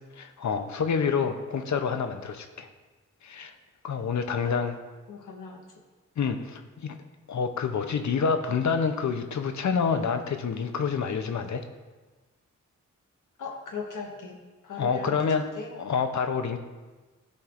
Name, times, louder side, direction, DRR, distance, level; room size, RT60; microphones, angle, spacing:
voice 1, 0.1-2.7 3.2-3.5 3.8-4.8 6.2-7.0 7.3-11.6 14.8-15.4 15.7-16.6, left 6 dB, 65° left, 7 dB, 0.7 m, -27 dB
voice 2, 5.1-5.6 13.4-15.7, left 5 dB, 85° left, 2 dB, 1.1 m, -39 dB
13.0 x 4.4 x 2.5 m, 1.3 s
cardioid pair, 75°, 31 cm